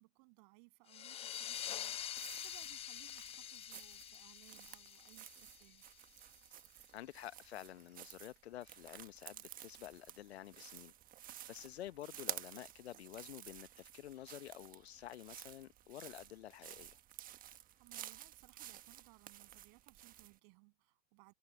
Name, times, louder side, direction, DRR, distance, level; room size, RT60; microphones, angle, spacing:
voice 1, 0.0-5.8 17.5-21.3, right 35 dB, 45° right, 7.8 m, -64 dB
sound 1, 0.9-6.2, left 11 dB, 15° left, 0.6 m, -46 dB
sound 2, 1.5-20.4, right 12 dB, 25° right, 1.3 m, -53 dB
voice 2, 6.9-10.9 11.2-17.0, left 12 dB, 65° left, 0.9 m, -50 dB
hypercardioid pair, 110°, 34 cm